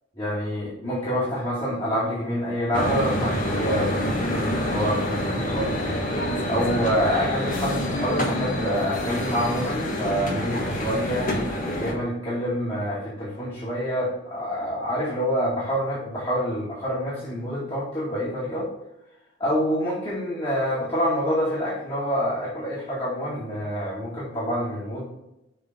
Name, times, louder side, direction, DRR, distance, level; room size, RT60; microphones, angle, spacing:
voice 1, 0.2-5.8 6.5-11.5 11.8-18.7 19.4-25.1, equal, 30° left, -9 dB, 2.2 m, -27 dB
sound 1, 2.7-11.9, left 1 dB, 45° left, 1.5 m, -27 dB
6.7 x 3.9 x 5.0 m, 0.91 s
head